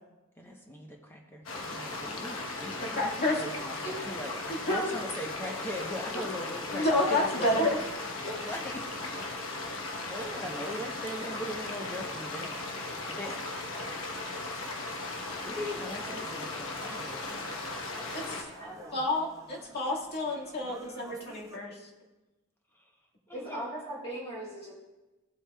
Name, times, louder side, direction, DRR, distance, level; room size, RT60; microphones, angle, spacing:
voice 1, 0.4-3.0 3.4-7.6 8.4-8.8 9.7-12.7 12.9-13.5 15.4-17.7 22.7-22.8 23.3-23.6, equal, 10° left, 1 dB, 0.9 m, -40 dB
sound 1, 1.5-18.4, left 2 dB, 75° left, 1.1 m, -37 dB
voice 2, 2.8-3.4 4.5-4.9 6.7-7.9 18.1-18.5 18.9-21.9, left 1 dB, 50° left, -3 dB, 1.9 m, -29 dB
sound 2, 14.1-21.6, right 2 dB, 15° right, 0.8 m, -53 dB
voice 3, 17.9-19.0 23.3-24.7, right 1 dB, 30° left, -5 dB, 1.7 m, -40 dB
14.5 x 7.7 x 2.3 m, 1.1 s
head